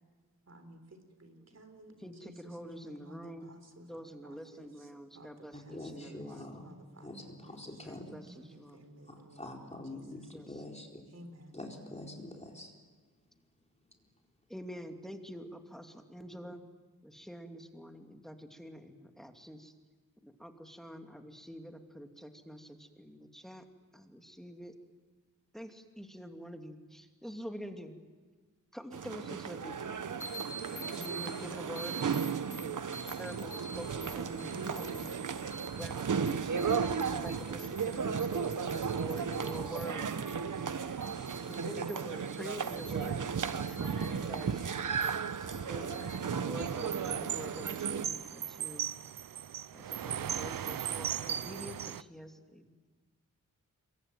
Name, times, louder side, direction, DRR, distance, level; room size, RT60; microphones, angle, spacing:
voice 1, 0.5-10.6 11.1-11.6, right 1 dB, 50° right, 7 dB, 4.1 m, -55 dB
voice 2, 2.0-3.5 3.9-6.6 7.8-8.8 10.3-10.5 14.5-16.6 17.0-19.7 20.2-23.6 23.9-24.7 25.5-28.0 28.7-30.1 30.7-32.9 33.2-35.1 35.7-36.8 37.1-40.2 40.5-41.1 41.5-43.2 43.5-44.8 45.4-48.9 49.7-52.7, equal, ahead, 5 dB, 2.6 m, -46 dB
voice 3, 5.5-6.7 7.0-8.2 9.1-11.0 11.5-12.7 13.9-14.0, left 1 dB, 20° left, 1 dB, 4.2 m, -45 dB
sound 1, 28.9-48.1, right 6 dB, 65° right, 1.2 m, -35 dB
sound 2, 30.2-46.2, right 1 dB, 35° left, 5.0 m, -49 dB
sound 3, 46.6-52.0, right 9 dB, 90° right, 0.7 m, -37 dB
27.0 x 23.0 x 9.2 m, 1.5 s
wide cardioid pair, 95°, 33 cm